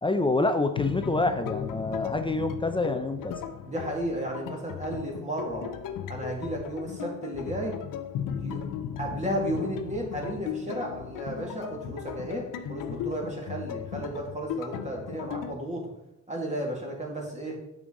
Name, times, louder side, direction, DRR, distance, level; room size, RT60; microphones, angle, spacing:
voice 1, 0.0-3.4, left 2 dB, 15° left, 7 dB, 0.5 m, -27 dB
sound 1, 0.8-15.5, left 8 dB, 70° left, 0.7 m, -36 dB
voice 2, 3.7-5.7 6.1-7.8 8.4-8.6 9.0-15.9 16.3-17.6, right 1 dB, 20° right, -1 dB, 2.1 m, -33 dB
8.8 x 6.5 x 3.8 m, 0.85 s
cardioid pair, 120°, 34 cm